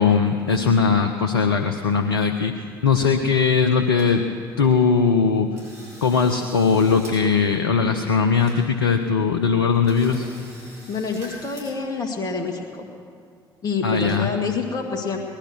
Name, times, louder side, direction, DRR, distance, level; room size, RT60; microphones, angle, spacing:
voice 1, 0.0-2.5 2.8-4.2 4.6-5.5 6.0-10.3 13.8-14.3, left 5 dB, 80° left, 4 dB, 0.7 m, -19 dB
sound 1, 3.6-4.1 4.5-4.6 5.0-5.2 5.6-7.2 7.4-7.5 8.1-8.2 8.4-9.0 9.4-9.5 9.9-11.6, equal, 60° right, 5.5 m, -44 dB
voice 2, 10.9-12.9 13.6-15.2, left 4 dB, 30° left, 0 dB, 1.9 m, -27 dB
19.5 x 11.5 x 6.3 m, 2.2 s
figure-of-eight pair, 45°, 13 cm